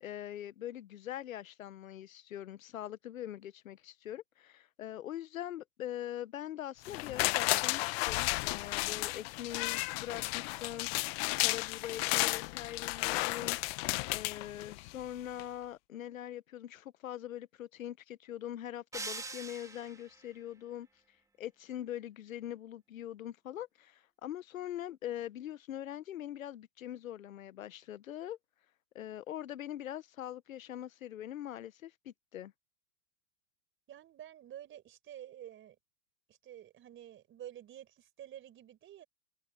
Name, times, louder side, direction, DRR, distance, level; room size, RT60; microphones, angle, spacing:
voice 1, 0.0-10.9 11.4-13.6 14.1-20.9 21.4-28.4 28.9-32.5, left 12 dB, 85° left, 1.1 m, -42 dB
sound 1, 6.8-15.0 15.4-15.5, left 25 dB, 50° left, 1.1 m, -33 dB
sound 2, 18.9-20.2, right 3 dB, 10° right, 2.0 m, -42 dB
voice 2, 33.9-35.8 36.3-39.1, right 11 dB, 30° right, 4.5 m, -50 dB
hypercardioid pair, 115°, 40 cm